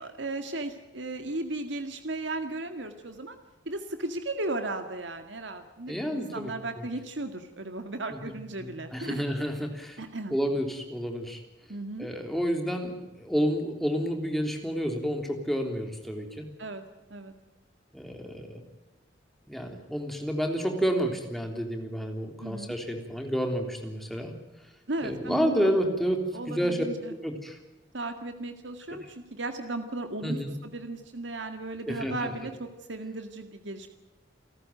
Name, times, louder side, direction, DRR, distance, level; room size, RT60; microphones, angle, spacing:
voice 1, 0.0-3.4 3.7-9.2 10.0-10.3 11.7-12.1 16.6-16.8 17.1-17.3 22.4-22.7 24.9-25.8 26.3-27.1 27.9-33.9, right 2 dB, 80° right, 7 dB, 2.0 m, -35 dB
voice 2, 5.9-6.5 6.8-6.9 8.1-8.2 8.6-10.0 10.3-11.4 12.0-16.5 17.9-18.6 19.5-24.3 25.0-27.6 30.2-30.5 31.9-32.3, equal, ahead, 3 dB, 3.5 m, -30 dB
29.0 x 13.5 x 9.2 m, 1.0 s
head